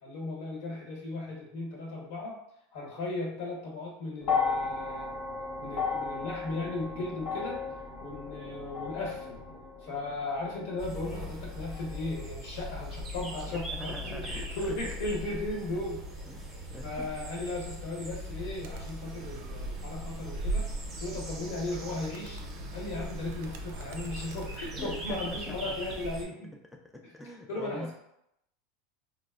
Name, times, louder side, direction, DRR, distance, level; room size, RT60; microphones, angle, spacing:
voice 1, 0.0-2.4 2.7-5.1 5.6-7.6 8.0-9.4 9.8-16.0 16.8-20.7 21.0-22.4 22.7-26.5 27.5-27.9, left 2 dB, 70° left, -2 dB, 1.1 m, -36 dB
sound 1, 4.2-12.6 13.6-13.7, left 5 dB, 45° left, 0.8 m, -35 dB
sound 2, 10.8-26.3, equal, 20° right, 0.7 m, -40 dB
voice 2, 13.5-14.9 16.2-17.1 24.7-25.7 26.9-27.9, equal, 5° left, 1 dB, 0.3 m, -44 dB
Animal, 18.6-25.1, right 2 dB, 75° right, 0.4 m, -40 dB
3.9 x 2.0 x 2.4 m, 0.78 s
supercardioid pair, 130°, 0 cm